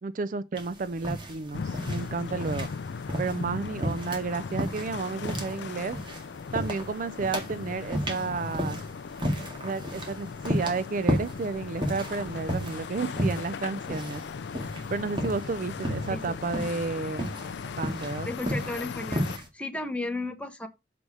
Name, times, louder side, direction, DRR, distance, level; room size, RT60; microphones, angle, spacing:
voice 1, 0.0-2.7 3.2-6.0 6.5-8.8 9.6-14.2 14.9-17.3 17.8-18.3, right 4 dB, 45° right, 0.4 m, -32 dB
sound 1, 0.6-19.5, equal, 25° right, 2.0 m, -34 dB
sound 2, 1.5-19.4, left 5 dB, 75° left, 0.4 m, -38 dB
voice 2, 18.3-20.7, left 2 dB, 5° left, 1.2 m, -34 dB
6.8 x 4.7 x 6.2 m
head